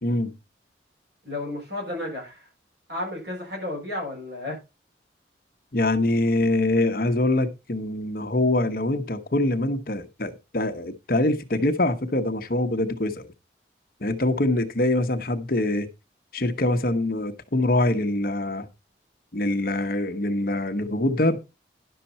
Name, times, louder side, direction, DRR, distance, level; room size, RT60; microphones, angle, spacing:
voice 1, 0.0-0.3 5.7-13.3 14.0-15.9 16.3-18.7 19.3-21.4, left 1 dB, 50° left, 1.0 m, -24 dB
voice 2, 1.2-2.5 2.9-4.6, left 1 dB, 70° right, 6.9 m, -32 dB
11.0 x 6.7 x 4.2 m
head